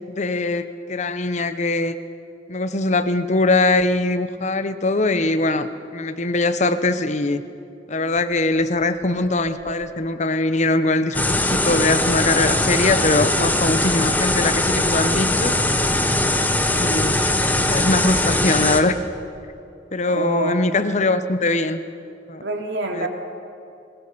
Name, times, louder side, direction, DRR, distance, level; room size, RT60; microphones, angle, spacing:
voice 1, 0.2-2.0 2.5-7.4 7.9-15.6 16.7-17.3 17.7-18.9 19.9-21.8 22.3-22.4 22.9-23.1, left 2 dB, 40° left, 11 dB, 1.0 m, -21 dB
sound 1, 8.2-10.1 11.6-13.0 13.3-14.7 15.0-16.4 16.7-18.1 18.4-19.8, left 1 dB, 25° right, 1.5 m, -43 dB
sound 2, 11.1-18.8, left 1 dB, 10° left, 1.1 m, -20 dB
voice 2, 20.1-20.6 22.4-23.1, right 2 dB, 75° right, 2 dB, 2.8 m, -26 dB
22.0 x 20.5 x 6.9 m, 2.6 s
head